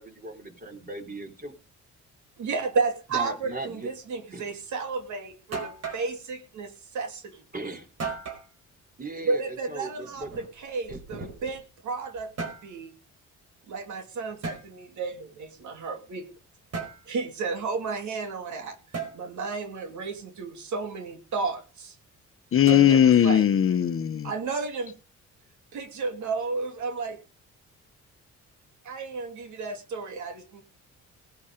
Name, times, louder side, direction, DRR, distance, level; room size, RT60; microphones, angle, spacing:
voice 1, 0.0-1.5 3.1-3.9 4.3-4.5 7.5-7.9 9.0-10.3 10.9-11.3, right 2 dB, 30° right, 5 dB, 4.0 m, -38 dB
voice 2, 2.4-7.4 9.3-12.9 13.7-16.3 17.1-18.8 19.1-21.9 22.7-23.4 24.2-24.9 25.7-27.2 28.8-30.6, right 4 dB, 75° right, 7 dB, 2.8 m, -32 dB
sound 1, 5.0-5.1 5.5-6.1 8.0-8.5 10.2-11.6 12.2-12.7 14.4-14.6 16.7-17.0 18.9-19.2 22.7-23.2, right 4 dB, 55° right, 4.8 m, -35 dB
voice 3, 22.5-24.3, left 10 dB, 45° left, 12 dB, 0.9 m, -19 dB
18.5 x 8.5 x 5.1 m, 0.33 s
cardioid pair, 90°, 30 cm